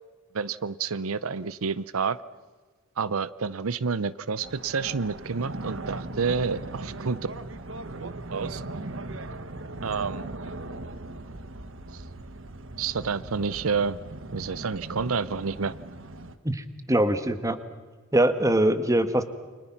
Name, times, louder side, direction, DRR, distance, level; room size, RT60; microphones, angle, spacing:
voice 1, 0.3-2.2 3.0-7.2 8.0-8.6 9.8-10.3 11.9-12.0 12.8-14.0 14.3-15.7, right 5 dB, 85° right, 18 dB, 0.7 m, -29 dB
sound 1, 4.4-16.4, right 2 dB, 65° right, 1.3 m, -39 dB
voice 2, 16.4-17.6 18.1-19.2, right 1 dB, 15° right, 10 dB, 1.3 m, -23 dB
29.5 x 25.5 x 5.9 m, 1.4 s
head